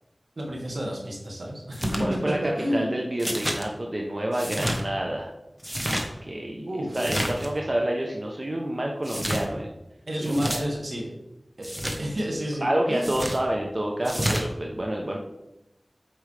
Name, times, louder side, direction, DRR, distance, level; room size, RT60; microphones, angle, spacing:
voice 1, 0.4-3.0 6.7-7.0 10.1-11.1 11.6-11.7 12.0-13.2, equal, 80° right, -2 dB, 2.0 m, -30 dB
sound 1, 1.7-2.0 3.2-3.6 4.3-4.8 5.6-6.1 6.9-7.5 9.0-9.4 10.2-10.6 11.6-12.0 13.0-13.4 14.0-14.4, equal, 15° right, 1.1 m, -29 dB
voice 2, 2.0-2.4 2.7-5.3 6.2-6.7 6.9-9.7 10.2-10.4 12.6-15.2, right 1 dB, 45° right, 0 dB, 0.8 m, -28 dB
8.2 x 5.2 x 3.4 m, 0.90 s
wide cardioid pair, 55°, 0 cm